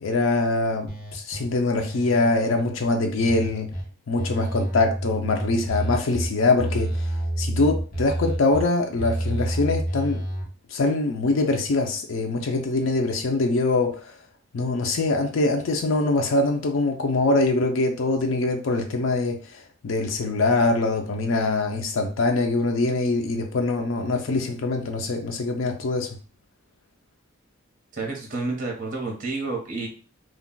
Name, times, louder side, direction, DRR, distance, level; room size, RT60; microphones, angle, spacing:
voice 1, 0.0-3.7 4.1-6.9 7.4-10.2 10.7-14.1 14.5-26.2, left 2 dB, 70° left, 0.4 m, -23 dB
sound 1, 0.9-1.4 1.8-3.8 4.2-6.3 6.6-8.6 9.0-10.4, right 1 dB, 45° left, 0.9 m, -29 dB
voice 2, 27.9-29.9, right 3 dB, 40° right, 0.8 m, -30 dB
2.3 x 2.2 x 3.7 m
head